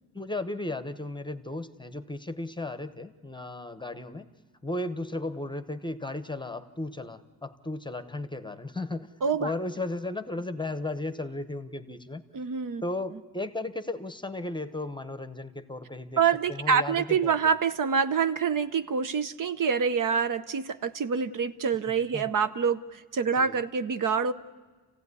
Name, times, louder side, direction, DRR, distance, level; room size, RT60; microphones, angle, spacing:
voice 1, 0.1-4.3 4.6-12.2 12.8-16.2 16.5-17.3 22.1-22.3 23.4-23.6, left 2 dB, 10° left, 11 dB, 1.0 m, -35 dB
voice 2, 9.2-9.5 12.3-12.8 16.2-24.3, right 6 dB, 55° right, 12 dB, 0.8 m, -26 dB
28.5 x 16.0 x 9.7 m, 1.4 s
cardioid pair, 115°, 39 cm